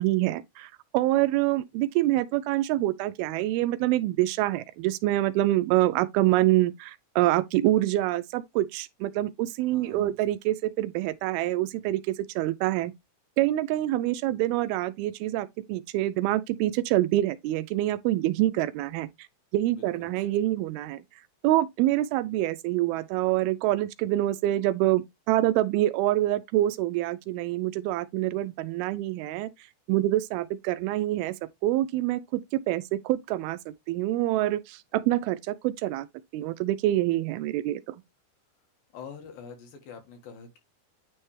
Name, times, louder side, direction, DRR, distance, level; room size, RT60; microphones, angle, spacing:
voice 1, 0.0-12.9 13.4-19.1 19.5-21.0 21.4-29.5 29.9-31.4 31.6-32.4 32.7-36.1 36.3-37.8, right 15 dB, 85° right, 2.4 m, -26 dB
voice 2, 9.7-10.2 19.7-20.1 34.9-35.1 38.9-40.6, left 6 dB, 70° left, 3.2 m, -45 dB
9.6 x 3.2 x 3.2 m
omnidirectional pair, 4.4 m